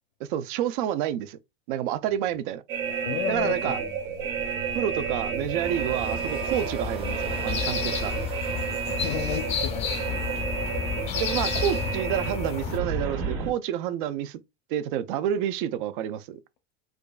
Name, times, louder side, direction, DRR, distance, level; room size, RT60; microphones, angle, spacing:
voice 1, 0.3-1.4 1.7-2.6 3.3-3.8 4.7-8.1 11.1-14.4 14.7-16.4, right 10 dB, 60° right, 0.4 m, -29 dB
sound 1, 2.7-13.5, right 6 dB, 85° right, 1.3 m, -31 dB
voice 2, 3.0-4.3 5.4-5.5 8.6-10.1, left 10 dB, 75° left, 0.6 m, -34 dB
sound 2, 5.3-12.8, left 7 dB, 20° left, 0.4 m, -32 dB
sound 3, 5.5-10.7, right 3 dB, 20° right, 0.7 m, -41 dB
4.9 x 2.4 x 2.2 m
supercardioid pair, 165°, 29 cm